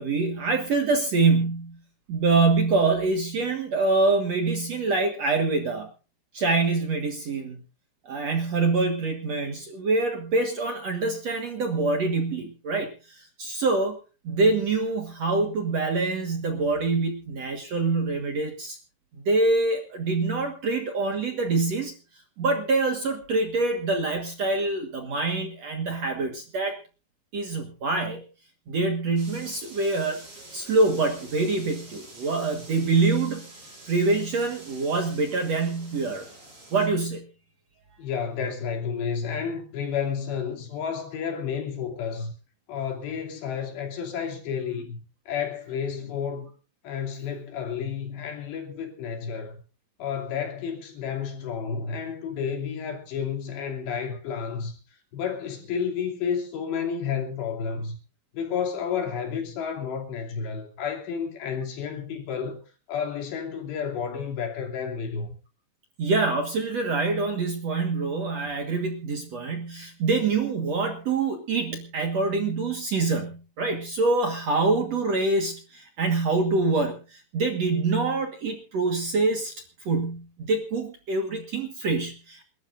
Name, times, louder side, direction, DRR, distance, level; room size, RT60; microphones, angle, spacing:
voice 1, 0.0-1.8 2.1-5.9 6.3-7.6 8.0-14.0 14.2-18.8 19.3-21.9 22.4-26.8 27.3-28.2 28.7-30.2 30.5-33.4 33.9-36.3 36.7-37.2 66.0-79.5 79.9-82.4, right 3 dB, 55° right, 1.9 m, -25 dB
sound 1, 29.2-36.9, right 2 dB, 30° right, 7.4 m, -47 dB
voice 2, 38.0-42.3 42.7-45.0 45.3-46.5 46.8-49.6 50.0-54.8 55.1-58.0 58.3-62.6 62.9-65.3, left 7 dB, 75° left, 4.9 m, -31 dB
28.5 x 12.5 x 2.6 m
omnidirectional pair, 5.1 m